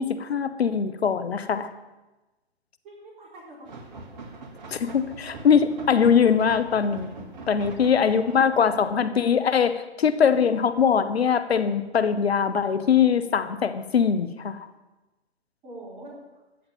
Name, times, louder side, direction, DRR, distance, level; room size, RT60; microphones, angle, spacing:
voice 1, 0.0-1.7 4.7-14.6, left 7 dB, 65° left, 12 dB, 1.2 m, -22 dB
voice 2, 2.8-3.7 7.5-8.4 15.6-16.2, right 1 dB, 20° right, -4 dB, 4.2 m, -45 dB
sound 1, 3.6-9.0, right 3 dB, 45° right, 1.9 m, -42 dB
14.0 x 7.9 x 7.2 m, 1.1 s
figure-of-eight pair, 135°, 34 cm